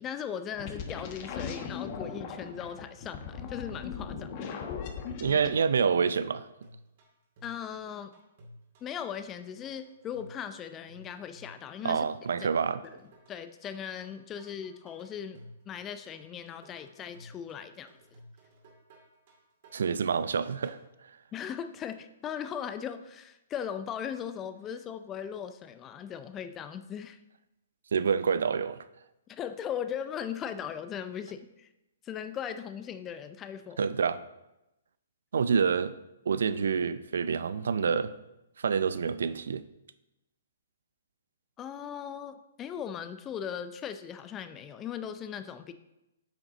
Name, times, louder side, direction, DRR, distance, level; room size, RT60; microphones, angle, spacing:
voice 1, 0.0-4.6 7.4-8.2 8.8-12.1 12.4-12.5 13.3-17.9 21.3-27.2 29.3-31.7 32.0-33.9 41.6-45.7, left 8 dB, 20° left, 10 dB, 0.5 m, -38 dB
sound 1, 0.5-5.5, left 6 dB, 40° left, 1.0 m, -38 dB
voice 2, 5.2-6.5 11.8-12.8 19.7-20.8 27.9-28.8 33.8-34.2 35.3-35.9 36.3-38.1 38.6-39.6, right 6 dB, 70° right, 14 dB, 0.5 m, -27 dB
sound 2, 6.6-20.8, equal, 50° right, 2.5 m, -55 dB
8.7 x 5.9 x 3.8 m, 0.93 s
hypercardioid pair, 125°, 0 cm